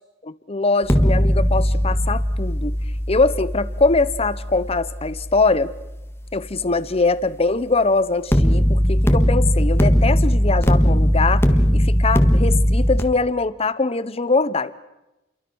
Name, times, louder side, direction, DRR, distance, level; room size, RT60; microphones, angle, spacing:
voice 1, 0.2-2.7 3.1-5.7 6.3-11.5 11.7-14.8, left 3 dB, 35° left, 16 dB, 0.9 m, -22 dB
sound 1, 0.8-5.9 8.3-13.0, equal, 15° left, 1.7 m, -19 dB
29.5 x 23.5 x 6.3 m, 0.96 s
head